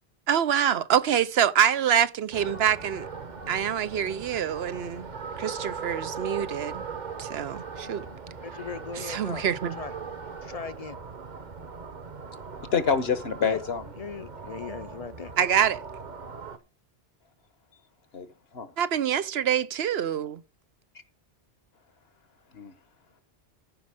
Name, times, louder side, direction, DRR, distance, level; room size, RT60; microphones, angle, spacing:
voice 1, 0.3-3.1 3.5-5.1 5.4-6.8 7.2-8.1 8.9-9.7 15.4-15.8 18.8-20.4, right 9 dB, 75° right, 1.0 m, -25 dB
sound 1, 2.3-16.6, right 5 dB, 45° right, 1.1 m, -39 dB
voice 2, 8.4-9.4 9.8-9.9 10.4-11.0 13.4-13.6 14.0-15.3, left 5 dB, 40° left, 0.7 m, -38 dB
voice 3, 12.7-13.8 18.1-18.7 22.5-22.7, left 6 dB, 75° left, 1.5 m, -27 dB
14.5 x 5.3 x 5.0 m
omnidirectional pair, 1.1 m